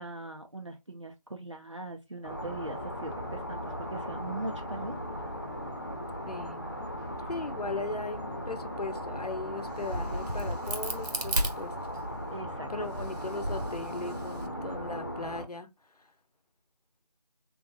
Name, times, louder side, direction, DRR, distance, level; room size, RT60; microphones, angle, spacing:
voice 1, 0.0-4.9 7.2-7.3 7.6-7.9 12.3-13.0, right 2 dB, 45° right, 0.6 m, -41 dB
sound 1, 2.2-15.4, equal, 30° left, 1.0 m, -38 dB
voice 2, 6.3-6.7 7.3-11.7 12.7-15.7 16.0-16.1, left 3 dB, 70° left, 0.9 m, -38 dB
Crack, 9.6-12.3 12.8-14.5, right 1 dB, 80° right, 1.2 m, -34 dB
3.6 x 3.5 x 3.0 m
figure-of-eight pair, 180°, 21 cm